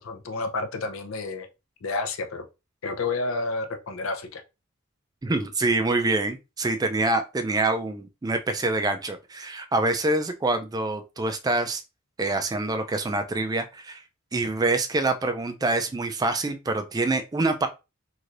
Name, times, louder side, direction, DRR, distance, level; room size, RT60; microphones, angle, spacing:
voice 1, 0.0-1.5 1.8-2.4 2.8-4.4, left 3 dB, 80° left, 0.6 m, -30 dB
voice 2, 5.2-11.8 12.2-14.0 14.3-17.7, right 2 dB, 20° right, 0.3 m, -26 dB
3.2 x 2.7 x 2.4 m
head